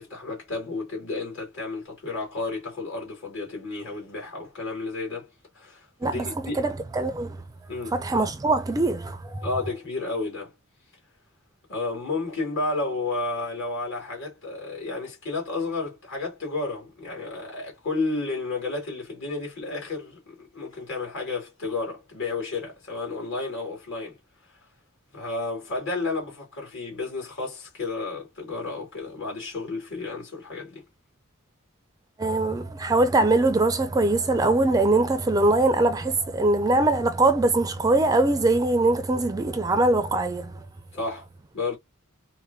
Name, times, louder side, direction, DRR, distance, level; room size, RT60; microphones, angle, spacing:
voice 1, 0.0-5.3 5.5-6.7 7.7-7.9 9.4-10.5 11.7-24.2 25.1-30.8 40.9-41.2 41.5-41.8, left 3 dB, 60° left, 2.4 m, -32 dB
voice 2, 6.0-7.4 7.9-9.5 32.2-40.6, right 2 dB, 15° right, 0.4 m, -22 dB
4.5 x 2.2 x 2.7 m
head